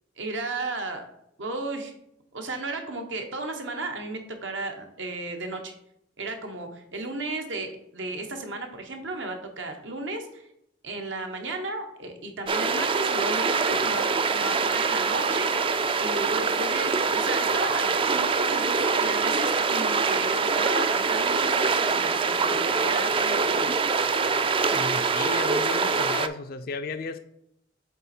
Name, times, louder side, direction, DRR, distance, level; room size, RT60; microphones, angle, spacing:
voice 1, 0.2-1.0 1.4-1.9 2.3-5.7 6.2-10.5 10.8-14.0 14.3-15.5 16.0-23.7, right 2 dB, 75° right, 4 dB, 1.2 m, -34 dB
sound 1, 12.5-26.3, right 4 dB, 30° right, 0.3 m, -24 dB
voice 2, 24.7-27.2, left 4 dB, 50° left, 9 dB, 0.4 m, -34 dB
7.3 x 4.1 x 4.3 m, 0.78 s
head